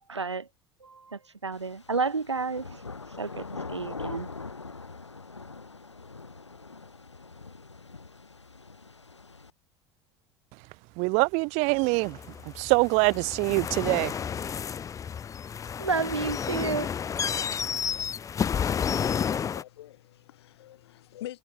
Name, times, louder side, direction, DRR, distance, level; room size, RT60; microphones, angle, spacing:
voice 1, 0.1-0.5 0.8-2.8 3.2-4.3 15.8-16.9, right 4 dB, 85° right, 2.6 m, -31 dB
sound 1, 1.5-9.5, left 4 dB, 85° left, 0.9 m, -43 dB
voice 2, 11.0-12.2 12.4-14.1, right 31 dB, 50° right, 0.8 m, -24 dB
sound 2, 11.8-19.6, left 7 dB, 20° left, 0.6 m, -31 dB
voice 3, 19.4-21.4, left 13 dB, 70° left, 4.5 m, -44 dB
figure-of-eight pair, 70°, 14 cm